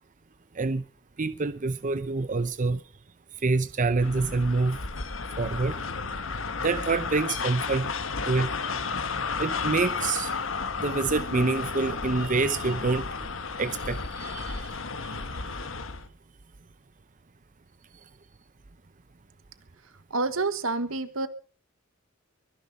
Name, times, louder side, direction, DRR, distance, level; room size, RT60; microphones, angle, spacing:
voice 1, 0.5-0.9 1.2-2.8 3.3-4.8 5.4-5.8 6.3-7.9 8.2-8.6 9.4-10.3 10.8-13.3 13.6-15.6, right 3 dB, 40° right, 0.7 m, -27 dB
sound 1, 4.0-16.1, left 4 dB, 70° left, 1.4 m, -33 dB
voice 2, 20.1-21.3, right 3 dB, 80° right, 1.5 m, -28 dB
22.5 x 10.5 x 5.4 m
head